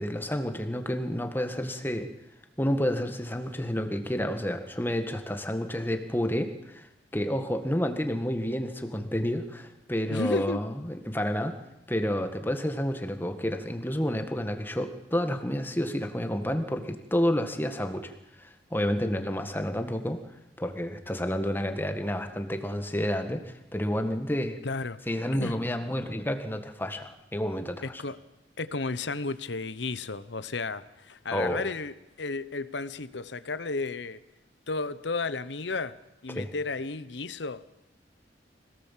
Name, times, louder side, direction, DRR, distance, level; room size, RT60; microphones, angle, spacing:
voice 1, 0.0-2.1 2.6-6.9 7.1-11.6 11.9-20.2 20.6-24.6 25.1-28.0 31.3-31.6 36.3-36.5, equal, 10° left, 6 dB, 1.7 m, -30 dB
voice 2, 10.1-10.6 24.6-25.0 25.3-25.6 28.0-28.2 28.6-34.2 34.7-36.0 36.2-37.6, left 3 dB, 75° left, 15 dB, 1.0 m, -33 dB
25.0 x 18.0 x 7.5 m, 0.94 s
head